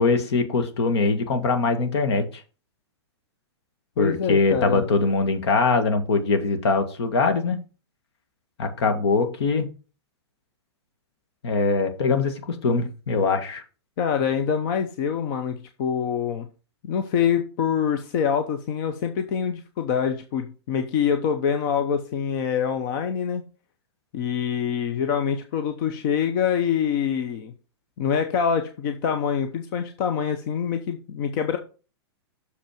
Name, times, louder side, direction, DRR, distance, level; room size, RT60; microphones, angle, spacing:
voice 1, 0.0-2.3 4.0-7.6 8.6-9.7 11.4-13.6, left 4 dB, 70° left, 7 dB, 1.7 m, -22 dB
voice 2, 4.0-4.8 14.0-16.5 16.8-23.4 24.1-27.5 28.0-31.6, left 7 dB, 50° left, 7 dB, 0.9 m, -25 dB
6.7 x 5.3 x 5.0 m, 0.34 s
hypercardioid pair, 135°, 14 cm